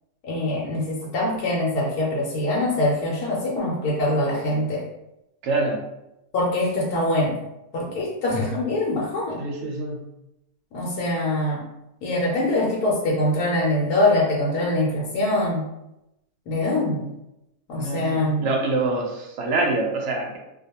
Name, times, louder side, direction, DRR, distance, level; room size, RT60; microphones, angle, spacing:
voice 1, 0.2-4.9 6.3-7.4 7.7-9.4 10.7-11.7 12.0-15.7 16.5-17.1 17.7-18.4, left 1 dB, 75° left, -4 dB, 1.1 m, -23 dB
voice 2, 5.4-5.8 9.4-10.0 17.8-20.4, right 2 dB, 65° right, 0 dB, 0.7 m, -25 dB
2.5 x 2.2 x 2.8 m, 0.87 s
omnidirectional pair, 1.7 m